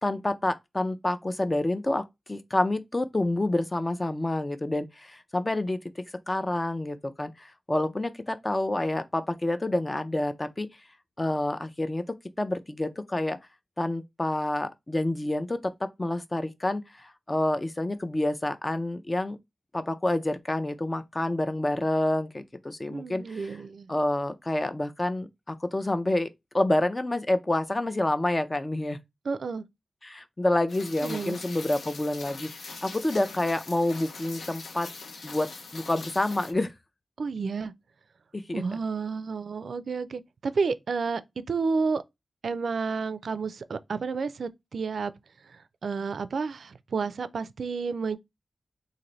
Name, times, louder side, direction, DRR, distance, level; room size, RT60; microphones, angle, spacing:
voice 1, 0.0-5.8 6.3-10.7 11.2-12.0 12.4-13.4 13.8-19.4 19.7-23.5 23.9-26.3 26.5-29.0 30.0-34.9 35.2-36.7 38.3-38.6, left 1 dB, 20° left, 0.4 m, -28 dB
voice 2, 22.9-23.9 29.2-29.6 31.0-31.4 37.2-37.7 38.5-41.2 41.5-42.0 42.4-45.1 45.5-48.2, right 4 dB, 80° right, 0.3 m, -31 dB
Rain, 30.7-36.5, left 4 dB, 90° left, 0.6 m, -42 dB
4.0 x 2.5 x 3.0 m
wide cardioid pair, 140°, 0 cm